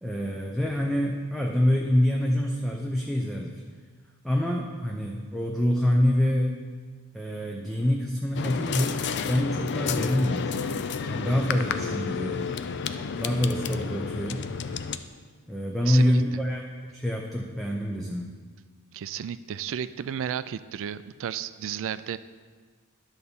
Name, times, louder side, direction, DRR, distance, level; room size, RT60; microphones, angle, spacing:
voice 1, 0.0-3.6 4.2-6.6 7.1-9.0 9.3-10.6 11.1-12.5 13.2-14.5 15.5-18.4, left 1 dB, ahead, -1 dB, 0.5 m, -26 dB
sound 1, 8.4-15.0, left 6 dB, 50° left, 0.4 m, -31 dB
voice 2, 15.8-16.2 18.9-22.2, right 8 dB, 60° right, 15 dB, 0.3 m, -33 dB
10.5 x 4.0 x 7.0 m, 1.6 s
head